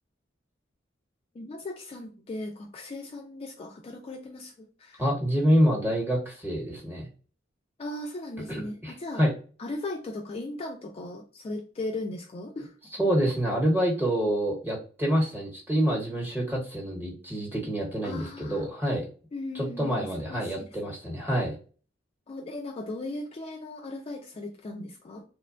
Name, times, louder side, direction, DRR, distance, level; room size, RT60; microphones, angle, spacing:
voice 1, 1.3-5.0 7.8-9.3 9.6-12.7 18.0-18.6 19.3-20.7 22.3-25.2, left 2 dB, 30° left, 2 dB, 0.3 m, -37 dB
voice 2, 5.0-7.1 8.5-9.3 12.9-19.0 19.5-21.5, equal, 10° right, -2 dB, 1.0 m, -27 dB
3.0 x 2.2 x 2.4 m, 0.39 s
head